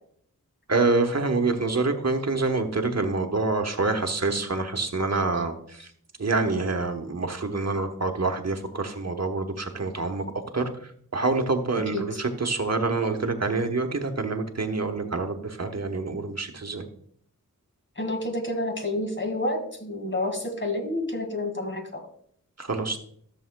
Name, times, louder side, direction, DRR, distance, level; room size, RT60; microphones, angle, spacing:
voice 1, 0.7-5.9 6.2-16.9 22.6-23.0, right 3 dB, 50° right, 5 dB, 1.2 m, -26 dB
voice 2, 18.0-22.0, left 1 dB, 35° left, 4 dB, 2.0 m, -29 dB
14.0 x 7.0 x 2.3 m, 0.63 s
wide cardioid pair, 40°, 33 cm